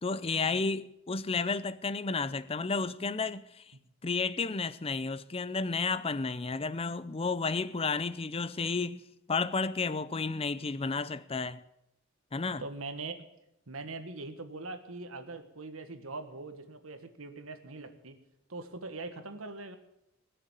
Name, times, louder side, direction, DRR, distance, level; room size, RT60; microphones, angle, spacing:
voice 1, 0.0-3.6 4.0-9.0 9.3-11.6 12.3-12.6, left 4 dB, 25° left, 0.6 m, -32 dB
voice 2, 12.6-13.2 13.7-18.2 18.5-19.8, right 3 dB, 75° right, 1.6 m, -42 dB
19.5 x 6.9 x 9.0 m
head